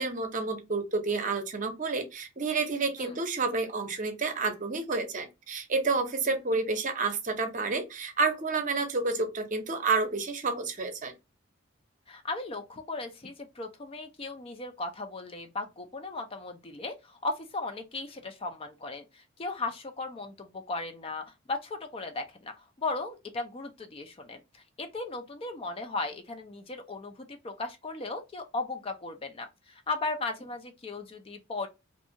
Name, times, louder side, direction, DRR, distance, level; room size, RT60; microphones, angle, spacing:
voice 1, 0.0-11.1, right 4 dB, 40° right, 0.7 m, -30 dB
voice 2, 12.1-31.7, left 3 dB, 25° left, 0.4 m, -37 dB
2.5 x 2.3 x 2.7 m
head